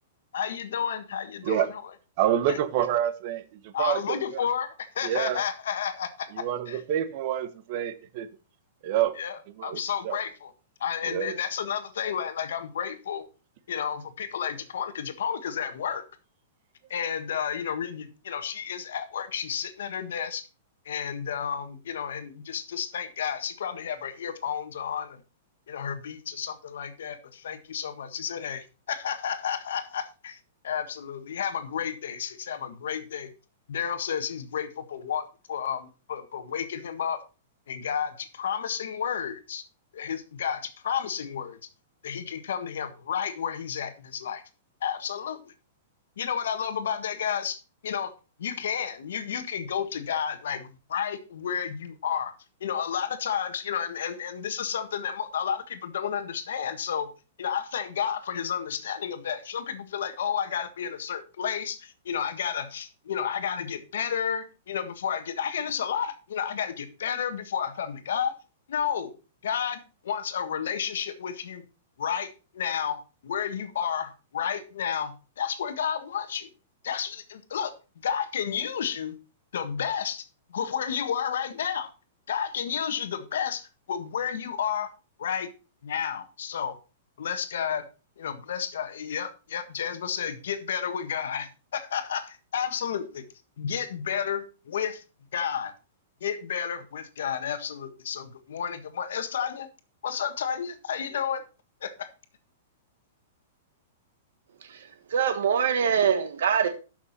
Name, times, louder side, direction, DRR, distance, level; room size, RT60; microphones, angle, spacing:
voice 1, 0.3-1.9 2.5-2.6 3.7-6.8 9.1-10.5 10.8-13.2 13.7-16.0 16.9-20.4 20.8-25.2 25.7-30.4 30.6-33.3 33.7-37.2 37.7-39.6 39.9-41.6 42.0-44.4 44.8-45.5 46.2-48.1 48.4-52.3 52.6-57.1 57.4-68.4 68.7-69.1 69.4-71.6 72.0-76.5 76.8-77.7 78.0-79.1 79.5-81.9 82.3-84.9 85.2-85.5 85.8-86.8 87.2-87.8 88.2-93.2 93.6-95.0 95.3-95.7 96.2-99.7 100.0-101.4 101.8-102.1, left 8 dB, 75° left, 1.5 m, -31 dB
voice 2, 2.2-3.4 3.8-4.2 5.0-5.4 6.4-8.3 8.8-9.2 9.6-9.8 10.0-10.2 11.1-11.4, right 11 dB, 40° right, 0.9 m, -27 dB
voice 3, 104.6-106.7, right 7 dB, 75° right, 1.4 m, -24 dB
12.5 x 6.3 x 4.1 m
supercardioid pair, 170°, 0 cm